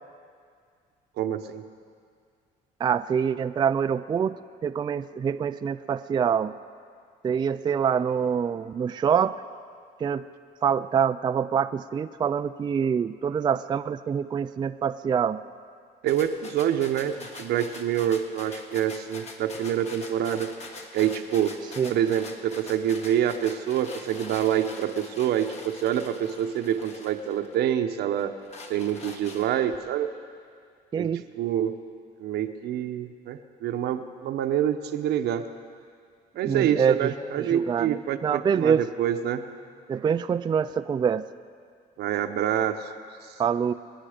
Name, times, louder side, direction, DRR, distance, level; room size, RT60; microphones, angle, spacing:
voice 1, 1.2-1.6 16.0-20.5 20.9-21.6 21.9-28.3 28.7-30.1 31.0-31.7 32.2-35.4 36.3-39.5 42.0-42.9 43.2-43.4, right 10 dB, 75° right, 8 dB, 1.0 m, -26 dB
voice 2, 2.8-4.4 4.6-6.5 7.2-9.4 10.0-10.2 10.6-15.4 21.8-21.9 30.9-31.2 36.4-37.1 37.5-38.8 39.9-41.3 43.4-43.7, right 7 dB, 25° right, 10 dB, 0.3 m, -25 dB
sound 1, 16.1-27.7 28.2-29.8, left 3 dB, 40° left, 1.7 m, -44 dB
25.5 x 10.0 x 5.1 m, 2.1 s
cardioid pair, 110°, 17 cm